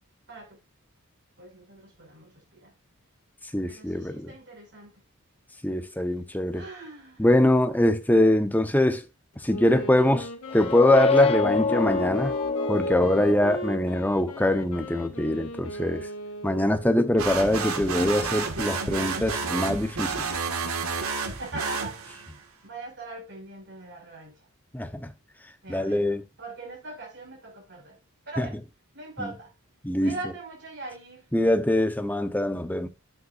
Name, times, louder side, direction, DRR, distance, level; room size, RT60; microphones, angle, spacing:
voice 1, 0.3-0.6 1.4-2.7 3.6-4.9 6.5-7.3 21.4-22.0 22.6-24.5 25.6-28.0 28.3-28.6 28.9-29.5 30.0-31.3, right 3 dB, 50° right, 5.9 m, -41 dB
voice 2, 3.5-4.3 5.6-6.6 7.2-9.0 9.4-12.3 12.7-16.1 16.4-20.1 24.7-25.1 25.7-26.2 28.4-28.5 29.8-30.1 31.3-32.9, left 1 dB, 10° left, 0.9 m, -23 dB
Wind instrument woodwind instrument, 9.5-17.2, equal, 80° left, 1.9 m, -37 dB
sound 1, 10.5-14.1, left 5 dB, 25° left, 0.5 m, -26 dB
sound 2, 17.2-22.4, right 4 dB, 80° right, 1.9 m, -30 dB
11.5 x 8.2 x 2.6 m
head